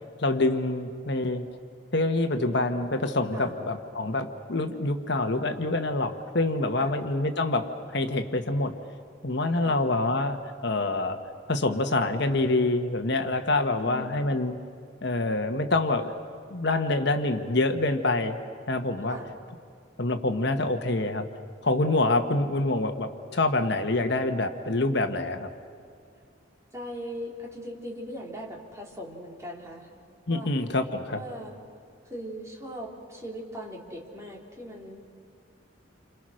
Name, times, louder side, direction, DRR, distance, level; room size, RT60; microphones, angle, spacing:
voice 1, 0.2-1.5 1.9-8.7 9.2-11.2 11.5-14.6 15.0-16.1 16.5-18.4 18.7-19.2 20.0-21.3 21.6-25.5 30.3-31.2, left 2 dB, 60° left, 7 dB, 1.4 m, -26 dB
voice 2, 13.8-14.1 19.1-19.3 26.7-29.9 30.3-30.5 31.1-31.6 32.0-35.0, equal, 15° right, -2 dB, 3.5 m, -39 dB
29.5 x 26.5 x 6.4 m, 2.3 s
head